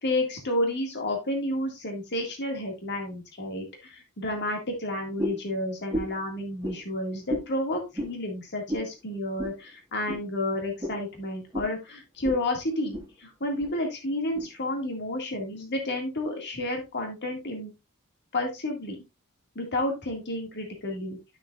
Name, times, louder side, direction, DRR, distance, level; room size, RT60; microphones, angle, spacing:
voice 1, 0.0-17.7 18.3-19.0 19.6-21.2, left 1 dB, 50° left, 2 dB, 2.1 m, -31 dB
sound 1, 5.2-5.5 5.9-6.2 6.6-6.8 7.3-7.5 7.9-8.1 8.7-8.9 9.4-9.6 10.1-10.2 10.8-11.0 11.5-11.7 12.2-12.4 12.7-13.1 13.6-13.7 14.3-14.5, equal, 15° right, 1.6 m, -32 dB
10.5 x 6.4 x 2.4 m, 0.24 s
head